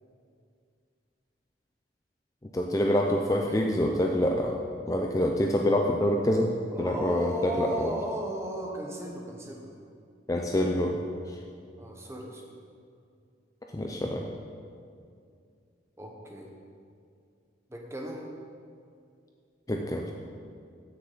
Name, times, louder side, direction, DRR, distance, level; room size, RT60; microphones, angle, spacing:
voice 1, 2.5-4.6 4.9-7.9 10.3-11.0 13.7-14.3 19.7-20.1, left 1 dB, 20° left, 1 dB, 0.4 m, -26 dB
voice 2, 3.1-3.6 6.7-9.7 11.8-12.4 16.0-16.5 17.7-18.2, right 1 dB, 15° right, 0 dB, 1.0 m, -36 dB
15.0 x 6.6 x 4.0 m, 2.3 s
head